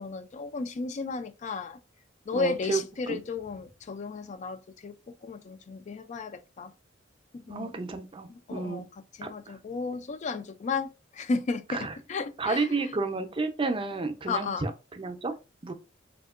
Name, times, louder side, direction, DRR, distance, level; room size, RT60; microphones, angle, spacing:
voice 1, 0.0-1.8 2.3-5.0 5.2-6.7 7.5-7.7 8.3-8.9 9.2-12.9 14.3-14.6, left 4 dB, 40° left, 0.3 m, -34 dB
voice 2, 2.3-3.2 7.5-8.8 9.2-9.5 11.7-11.9 12.4-15.3 15.6-15.7, right 3 dB, 25° right, 0.5 m, -31 dB
3.5 x 2.8 x 2.4 m
head